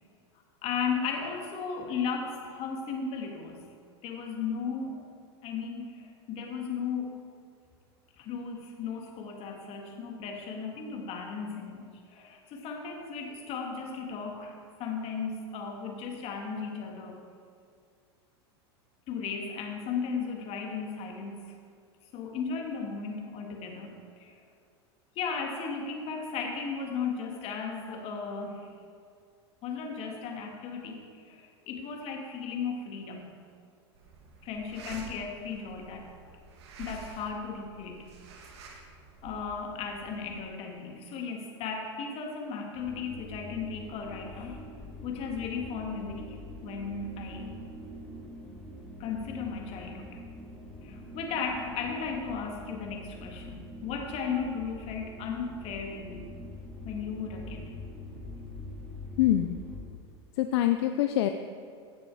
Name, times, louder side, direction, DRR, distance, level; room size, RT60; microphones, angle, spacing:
voice 1, 0.6-3.6 4.0-5.0 5.4-7.2 8.2-17.2 19.1-21.4 22.1-24.3 25.2-28.7 29.6-33.3 34.4-36.1 36.8-38.1 39.2-44.6 45.0-46.4 46.6-47.6 49.0-50.2 50.8-56.3 56.8-57.7, left 5 dB, 45° left, 2 dB, 2.2 m, -35 dB
sound 1, 33.9-40.4, right 3 dB, 75° right, 1.8 m, -49 dB
sound 2, 42.7-59.8, left 1 dB, ahead, 2.7 m, -44 dB
voice 2, 59.2-59.6 60.4-61.3, left 13 dB, 70° left, 7 dB, 0.6 m, -25 dB
16.5 x 6.9 x 4.8 m, 2.2 s
supercardioid pair, 120°, 14 cm